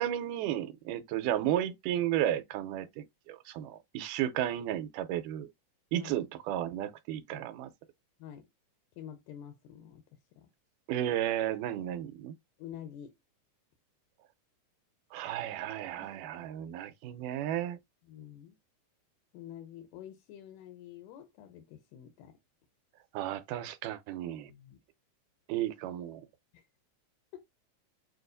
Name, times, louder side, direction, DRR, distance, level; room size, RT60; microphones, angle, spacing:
voice 1, 0.0-5.5 5.9-7.7 10.9-12.4 15.1-17.8 23.1-24.5 25.5-26.3, right 12 dB, 85° right, 2.1 m, -33 dB
voice 2, 9.0-10.0 10.4-10.5 12.6-13.1 16.0-16.1 18.1-18.6 19.3-22.4 24.4-24.8 26.5-26.6, left 10 dB, 85° left, 2.2 m, -48 dB
6.6 x 2.3 x 2.5 m
omnidirectional pair, 3.7 m